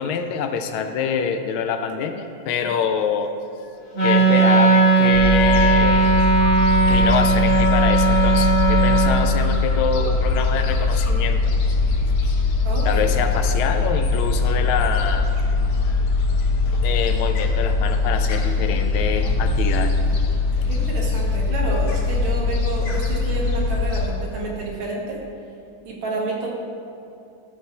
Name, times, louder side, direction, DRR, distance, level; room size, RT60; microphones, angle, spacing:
voice 1, 0.0-3.3 3.6-3.7 4.0-6.1 6.9-11.6 11.8-12.1 12.8-15.4 15.8-16.0 16.7-20.0 20.6-20.7, left 6 dB, 80° left, 7 dB, 1.4 m, -26 dB
Wind instrument woodwind instrument, 3.9-9.2, right 3 dB, 40° left, 2.2 m, -17 dB
Gull seagull, 5.1-24.1, left 3 dB, 65° left, 1.2 m, -21 dB
voice 2, 12.6-13.1 20.6-25.2 25.9-26.5, right 2 dB, 75° right, -2 dB, 2.0 m, -29 dB
13.0 x 4.7 x 2.9 m, 2.6 s
omnidirectional pair, 2.3 m